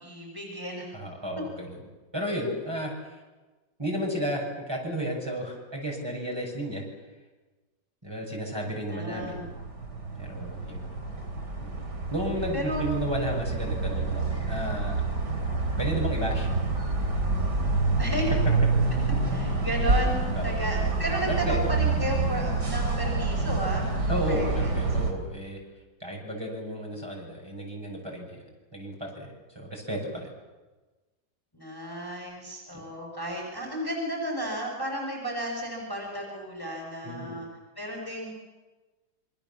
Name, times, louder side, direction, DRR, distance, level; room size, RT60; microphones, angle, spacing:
voice 1, 0.0-0.9 8.9-9.4 12.5-12.9 18.0-18.3 19.3-20.2 20.4-23.9 24.3-24.7 31.5-37.5 37.8-38.3, equal, 10° left, -1 dB, 5.5 m, -33 dB
voice 2, 0.9-1.8 2.1-3.2 3.8-6.8 8.0-9.5 10.2-10.8 11.6-15.0 15.8-16.5 20.3-20.6 21.2-21.7 24.1-25.6 26.0-28.4 28.7-30.3 32.7-32.9 37.0-37.4, equal, 15° right, -2 dB, 6.4 m, -33 dB
sound 1, 9.1-25.1, right 3 dB, 65° right, 3.8 m, -27 dB
27.5 x 25.0 x 7.2 m, 1.2 s
omnidirectional pair, 2.0 m